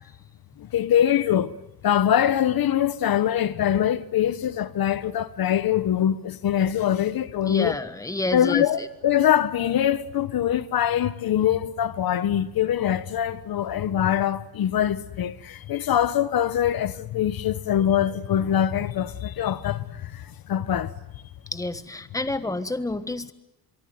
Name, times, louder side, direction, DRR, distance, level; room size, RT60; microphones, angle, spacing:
voice 1, 0.7-1.5 1.8-7.7 8.3-19.8 20.5-20.9, left 10 dB, 65° left, 1.1 m, -23 dB
voice 2, 7.4-8.9 21.5-23.3, left 2 dB, 10° left, 1.4 m, -29 dB
24.5 x 24.0 x 9.3 m
cardioid pair, 135°, 39 cm